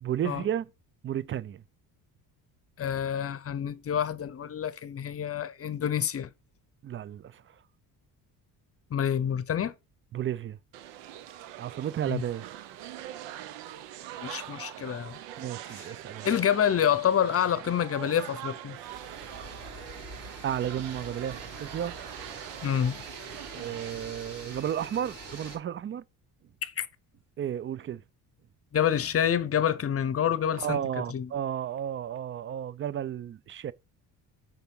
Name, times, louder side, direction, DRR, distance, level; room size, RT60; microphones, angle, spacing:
voice 1, 0.0-0.7 1.0-1.6 6.8-7.4 10.1-10.6 11.6-12.5 15.4-16.3 20.4-21.9 23.5-26.0 27.4-28.0 30.6-33.7, right 10 dB, 30° right, 0.4 m, -33 dB
voice 2, 2.8-6.3 8.9-9.7 12.1-12.2 14.2-15.2 15.7-15.9 16.2-18.8 22.6-23.0 23.5-23.6 26.6-26.9 28.7-30.8 31.1-31.3, left 9 dB, 35° left, 0.7 m, -28 dB
sound 1, 10.7-23.9, right 12 dB, 90° right, 0.8 m, -43 dB
sound 2, 18.7-25.6, right 3 dB, 50° right, 3.9 m, -44 dB
5.7 x 3.5 x 5.4 m
supercardioid pair, 85°, 42 cm